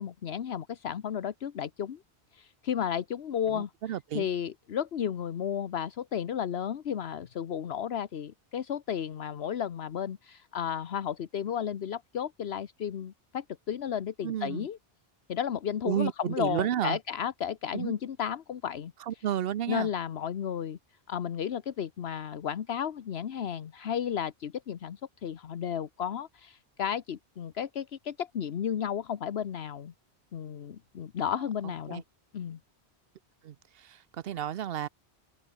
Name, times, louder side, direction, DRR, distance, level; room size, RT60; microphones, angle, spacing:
voice 1, 0.0-2.0 2.3-14.8 15.3-19.2 19.7-20.8 21.1-29.9 30.3-32.0 32.3-32.6, left 8 dB, 75° left, 1.1 m, -33 dB
voice 2, 3.5-4.3 14.2-14.7 15.8-17.0 17.7-17.9 19.1-19.9 31.9-32.0 33.4-34.9, right 10 dB, 65° right, 0.8 m, -32 dB
open air
omnidirectional pair, 1.1 m